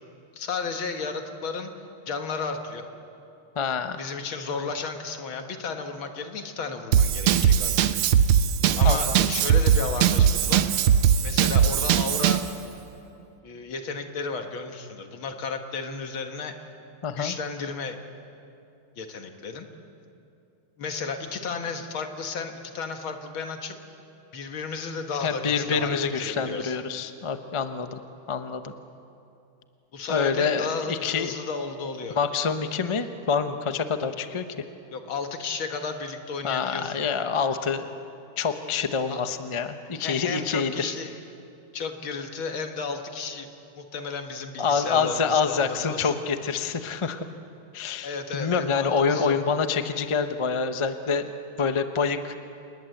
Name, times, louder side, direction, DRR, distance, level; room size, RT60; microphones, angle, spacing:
voice 1, 0.4-1.7 2.1-2.9 4.0-7.9 8.8-10.7 11.2-12.5 13.4-16.7 17.2-18.0 19.0-19.7 20.8-23.8 24.3-26.8 29.9-32.2 34.9-37.0 39.1-39.2 40.0-41.1 41.7-43.5 43.8-46.1 48.0-49.4, left 4 dB, 70° left, 5 dB, 2.4 m, -33 dB
voice 2, 3.5-4.0 8.8-9.2 17.0-17.3 25.2-28.0 28.3-28.7 30.1-31.4 32.1-34.4 36.4-37.8 38.4-40.9 44.6-47.2 47.7-51.3 51.6-52.3, left 5 dB, 55° left, 8 dB, 0.3 m, -26 dB
Drum kit / Drum, 6.9-12.5, right 8 dB, 90° right, 1.7 m, -20 dB
28.0 x 20.5 x 7.9 m, 2.7 s
omnidirectional pair, 2.3 m